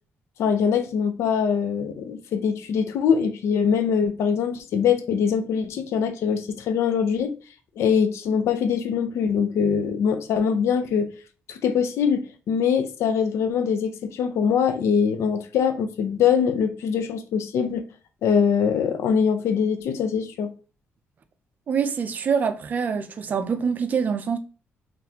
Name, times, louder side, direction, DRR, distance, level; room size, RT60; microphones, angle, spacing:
voice 1, 0.4-7.3 7.8-11.1 11.5-17.8 18.2-20.5, left 7 dB, 70° left, 0.5 m, -23 dB
voice 2, 21.7-24.4, right 6 dB, 35° right, 0.4 m, -25 dB
4.0 x 3.2 x 2.8 m
cardioid pair, 165°, 5 cm